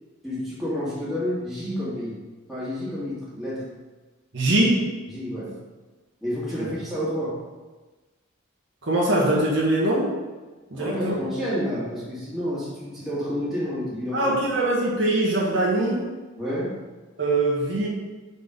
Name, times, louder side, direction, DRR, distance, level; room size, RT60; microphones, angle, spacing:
voice 1, 0.2-2.2 2.5-3.6 5.1-5.5 6.2-7.4 10.7-14.3 16.4-16.8, equal, ahead, -10 dB, 2.2 m, -29 dB
voice 2, 4.3-4.8 6.6-6.7 8.8-10.1 10.7-11.2 14.1-16.1 17.2-17.9, right 1 dB, 65° right, -5 dB, 1.4 m, -22 dB
5.4 x 4.2 x 5.2 m, 1.3 s
head